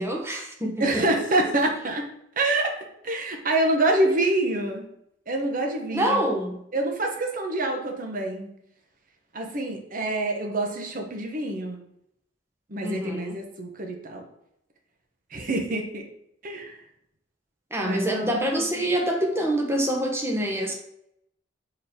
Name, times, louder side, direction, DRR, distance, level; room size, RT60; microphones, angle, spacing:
voice 1, 0.0-1.0 5.9-6.6 12.8-13.4 17.7-20.7, right 1 dB, 15° right, 1 dB, 1.0 m, -26 dB
voice 2, 0.8-2.0 2.4-2.7 3.0-4.8 5.3-6.2 6.7-8.5 9.3-11.8 12.7-14.2 15.3-16.0 16.4-16.8 17.8-18.6, right 2 dB, 45° right, 2 dB, 1.1 m, -26 dB
4.7 x 4.4 x 5.1 m, 0.75 s
head